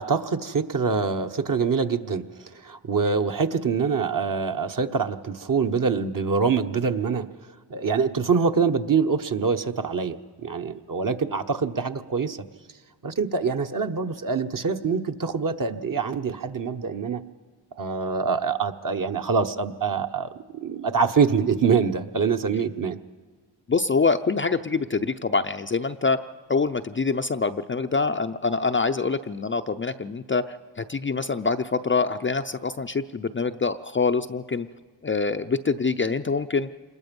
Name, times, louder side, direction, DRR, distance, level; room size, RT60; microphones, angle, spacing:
voice 1, 0.0-2.2 2.5-7.3 7.7-12.4 13.0-17.2 17.8-23.0, right 5 dB, 40° right, 6 dB, 1.2 m, -25 dB
voice 2, 23.7-26.2 26.5-34.7 35.0-36.7, left 4 dB, 25° left, 7 dB, 0.6 m, -25 dB
26.5 x 21.0 x 5.4 m, 1.5 s
cardioid pair, 60°, 49 cm